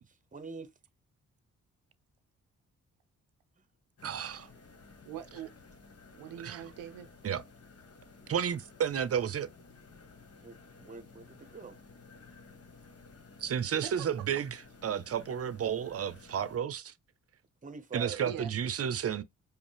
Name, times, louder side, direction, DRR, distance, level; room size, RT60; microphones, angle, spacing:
voice 1, 0.3-0.7 10.4-11.8 17.6-18.2, right 5 dB, 25° right, 0.9 m, -44 dB
sound 1, 4.0-16.6, left 4 dB, 50° left, 1.3 m, -55 dB
voice 2, 4.0-4.5 6.4-6.6 7.2-7.4 8.3-9.5 13.4-16.9 17.9-19.2, right 8 dB, 45° right, 0.7 m, -32 dB
voice 3, 5.1-5.6 6.1-7.1 8.2-8.3 13.8-14.4 18.2-18.5, right 10 dB, 90° right, 0.5 m, -43 dB
5.1 x 2.1 x 3.3 m
supercardioid pair, 60°, 32 cm